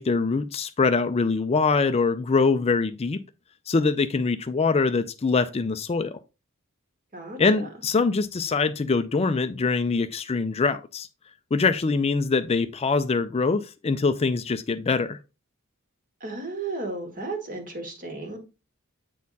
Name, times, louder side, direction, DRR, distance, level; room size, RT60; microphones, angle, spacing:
voice 1, 0.0-3.2 3.7-6.2 7.4-11.1 11.5-15.2, left 4 dB, 30° left, 0.4 m, -23 dB
voice 2, 7.1-7.7 16.2-18.4, right 3 dB, 40° right, 1.9 m, -34 dB
8.3 x 4.3 x 4.0 m
head